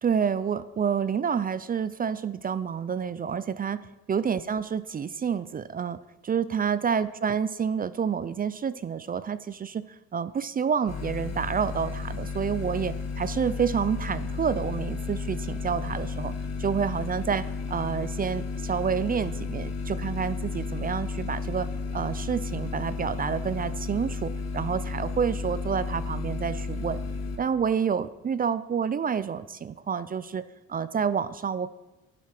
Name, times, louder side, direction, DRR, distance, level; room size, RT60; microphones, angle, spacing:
voice 1, 0.0-3.8 4.1-16.3 16.6-17.4 17.7-27.0 27.4-30.4 30.7-31.7, right 7 dB, 30° right, 16 dB, 0.5 m, -28 dB
sound 1, 10.9-27.4, left 4 dB, 55° left, 2.4 m, -33 dB
11.5 x 11.0 x 5.9 m, 1.0 s
cardioid pair, 130°, 31 cm